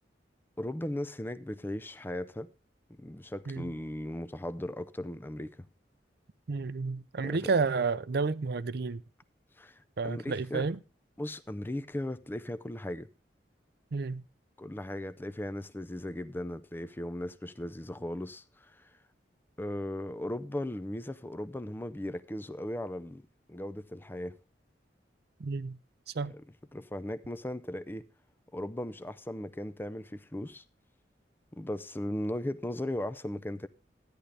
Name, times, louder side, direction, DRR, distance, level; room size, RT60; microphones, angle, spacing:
voice 1, 0.6-2.5 2.9-5.7 7.2-7.4 9.6-10.7 11.2-13.1 14.6-18.9 19.6-24.4 26.3-26.4 26.7-28.0 28.5-30.6 31.5-33.7, left 1 dB, 10° left, 0.5 m, -37 dB
voice 2, 6.5-9.0 10.0-10.8 13.9-14.2 25.4-25.8 26.1-26.3, right 4 dB, 65° right, 0.6 m, -31 dB
13.5 x 10.0 x 3.3 m
head